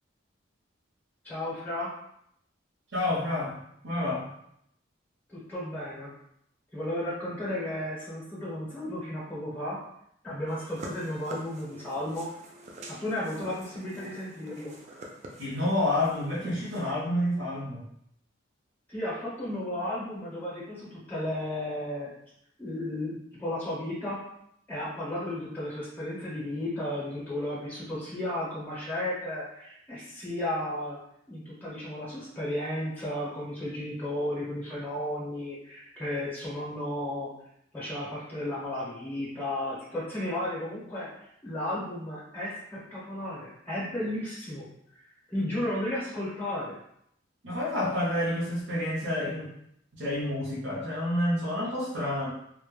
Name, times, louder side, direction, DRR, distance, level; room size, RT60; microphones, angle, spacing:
voice 1, 1.2-1.9 5.3-6.1 6.7-9.8 10.2-12.3 12.9-14.7 18.9-22.1 22.6-24.2 24.7-31.0 31.3-37.3 37.7-44.7 44.9-45.0 45.3-46.7, left 1 dB, 10° left, -6 dB, 0.6 m, -34 dB
voice 2, 2.9-4.3 15.4-17.8 47.4-49.5 49.9-52.3, left 1 dB, 80° right, -7 dB, 0.6 m, -29 dB
sound 1, 10.5-16.9, right 1 dB, 35° right, 0.3 m, -47 dB
2.1 x 2.0 x 3.1 m, 0.74 s
head